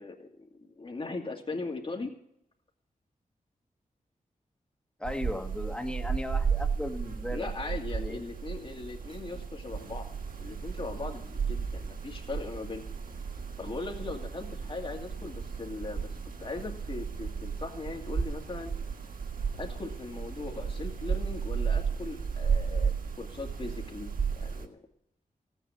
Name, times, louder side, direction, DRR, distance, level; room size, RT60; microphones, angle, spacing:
voice 1, 0.0-2.1 7.3-10.1 10.4-12.8 13.6-18.7 19.5-24.1 24.4-24.8, left 3 dB, 40° left, 2 dB, 2.4 m, -39 dB
voice 2, 5.0-7.5 8.0-8.2, left 1 dB, 5° left, 4 dB, 1.6 m, -36 dB
sound 1, 5.0-24.7, right 6 dB, 75° right, 1.6 m, -34 dB
16.0 x 9.2 x 5.8 m, 0.73 s
wide cardioid pair, 110°, 14 cm